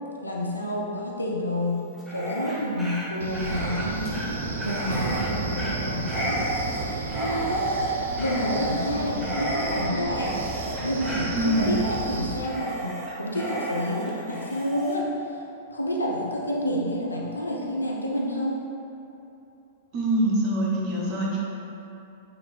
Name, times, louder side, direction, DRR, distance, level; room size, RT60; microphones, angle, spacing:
voice 1, 0.2-1.8 2.1-4.2 4.6-6.4 6.8-7.7 8.1-10.4 10.8-15.4 15.7-18.6, equal, 80° left, -2 dB, 0.4 m, -29 dB
Dog, 1.9-15.0, right 1 dB, ahead, 0.6 m, -32 dB
Wind, 3.2-12.4, right 2 dB, 70° right, 0.3 m, -32 dB
voice 2, 11.3-11.7 19.9-21.4, right 1 dB, 35° right, -4 dB, 0.7 m, -24 dB
3.2 x 2.5 x 3.2 m, 2.9 s
figure-of-eight pair, 100°, 0 cm